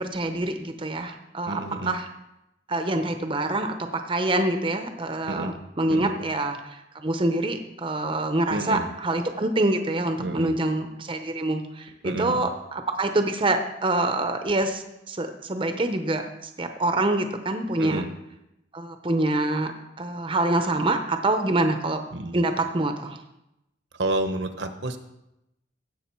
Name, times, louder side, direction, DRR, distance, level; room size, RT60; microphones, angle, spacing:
voice 1, 0.0-2.1 2.7-18.0 18.7-19.7 20.0-22.0 22.3-23.2, right 2 dB, 30° right, 7 dB, 0.7 m, -26 dB
voice 2, 1.5-1.9 5.2-5.5 5.9-6.1 8.5-8.9 10.2-10.5 12.0-12.4 17.8-18.1 22.1-22.4 24.0-25.0, right 2 dB, 75° right, 8 dB, 1.0 m, -29 dB
15.5 x 6.3 x 4.5 m, 0.87 s
head